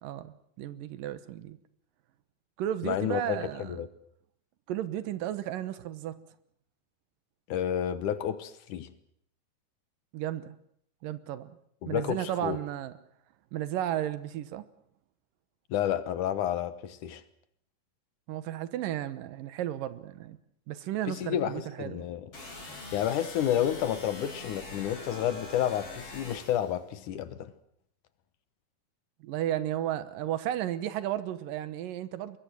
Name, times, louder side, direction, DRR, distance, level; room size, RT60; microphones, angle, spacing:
voice 1, 0.0-1.6 2.6-3.8 4.7-6.2 10.1-10.6 11.0-11.6 11.9-12.9 13.5-14.7 18.3-20.4 20.7-22.1 29.2-32.4, right 12 dB, 80° right, 2.8 m, -34 dB
voice 2, 2.8-3.9 7.5-8.9 11.8-12.6 15.7-17.2 21.1-22.3 22.9-27.5, left 10 dB, 70° left, 2.5 m, -30 dB
sound 1, 22.3-26.7, left 2 dB, 40° left, 6.6 m, -43 dB
23.0 x 22.0 x 7.8 m
omnidirectional pair, 4.0 m